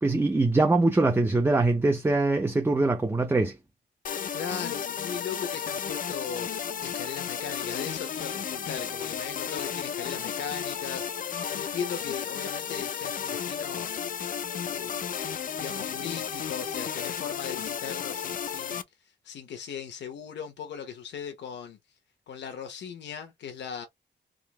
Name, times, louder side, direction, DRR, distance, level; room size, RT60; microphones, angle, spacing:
voice 1, 0.0-3.6, right 2 dB, 10° right, 0.6 m, -23 dB
sound 1, 4.0-18.8, left 8 dB, 50° left, 0.5 m, -33 dB
voice 2, 4.3-14.1 14.7-15.1 15.6-18.8 19.2-21.8 22.3-23.8, left 7 dB, 80° left, 1.1 m, -38 dB
3.8 x 3.0 x 3.0 m
cardioid pair, 110°, 18 cm